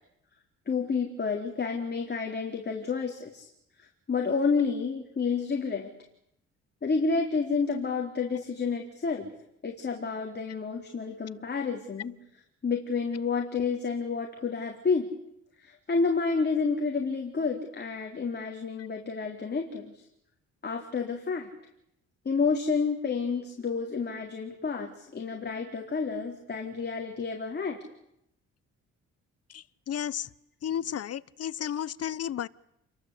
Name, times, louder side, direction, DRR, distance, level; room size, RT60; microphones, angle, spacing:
voice 1, 0.7-3.5 3.8-5.9 6.8-9.3 9.6-12.1 12.6-15.1 15.6-20.0 20.6-21.5 22.2-27.8, left 5 dB, 35° left, 2 dB, 4.1 m, -30 dB
voice 2, 29.5-30.3 30.6-32.5, left 9 dB, 55° left, 19 dB, 1.0 m, -33 dB
29.5 x 23.0 x 8.5 m, 0.79 s
cardioid pair, 90°, 30 cm